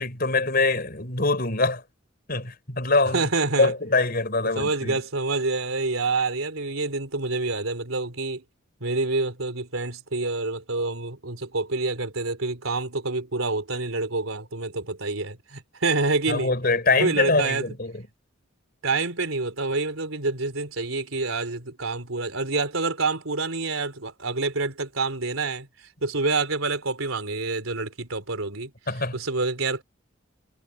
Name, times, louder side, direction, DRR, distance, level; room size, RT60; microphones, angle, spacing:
voice 1, 0.0-1.8 2.3-3.3 3.6-5.0 16.3-18.0 28.9-29.2, left 3 dB, 45° left, 5.5 m, -24 dB
voice 2, 3.1-3.7 4.6-8.4 8.8-16.5 17.0-17.7 18.8-25.7 26.0-28.7 29.1-29.8, right 3 dB, 90° right, 3.8 m, -27 dB
head